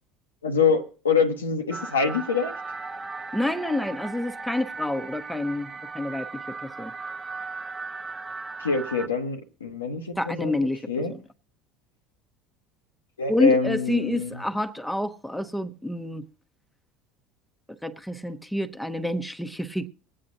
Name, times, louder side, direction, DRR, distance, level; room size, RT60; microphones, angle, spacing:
voice 1, 0.4-2.5 8.6-10.5 10.9-11.1 13.2-14.4, left 5 dB, 85° left, 0.9 m, -25 dB
sound 1, 1.7-9.1, right 4 dB, 25° right, 0.9 m, -37 dB
voice 2, 3.3-6.9 10.2-10.8 11.1-11.2 13.3-16.3 17.8-19.9, left 1 dB, 5° left, 0.9 m, -28 dB
22.5 x 8.6 x 2.6 m
hypercardioid pair, 70°, 0 cm